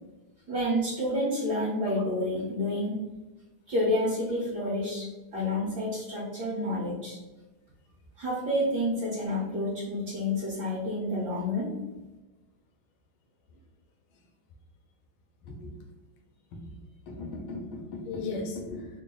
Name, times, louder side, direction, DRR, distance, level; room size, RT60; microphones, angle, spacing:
voice 1, 0.5-3.0 3.7-7.2 8.2-11.7, left 1 dB, 55° right, -9 dB, 1.4 m, -29 dB
voice 2, 17.1-18.9, left 3 dB, 80° left, 3 dB, 1.4 m, -36 dB
4.0 x 2.0 x 3.7 m, 1.1 s
omnidirectional pair, 2.3 m